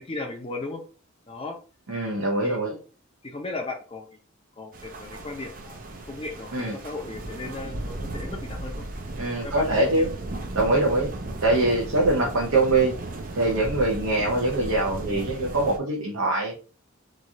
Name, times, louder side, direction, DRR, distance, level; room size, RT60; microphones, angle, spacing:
voice 1, 0.1-0.8 1.3-1.6 2.4-2.8 3.2-4.1 4.6-5.8 6.1-8.8 9.4-10.1 11.0-11.1, left 3 dB, 25° left, 3 dB, 0.5 m, -36 dB
voice 2, 1.9-2.7 6.5-6.7 9.2-10.1 10.5-11.1 11.4-12.9 13.3-16.6, right 2 dB, 80° right, -3 dB, 0.8 m, -23 dB
sound 1, 4.7-15.8, right 2 dB, 40° right, 0.5 m, -35 dB
3.0 x 2.4 x 2.7 m, 0.36 s
head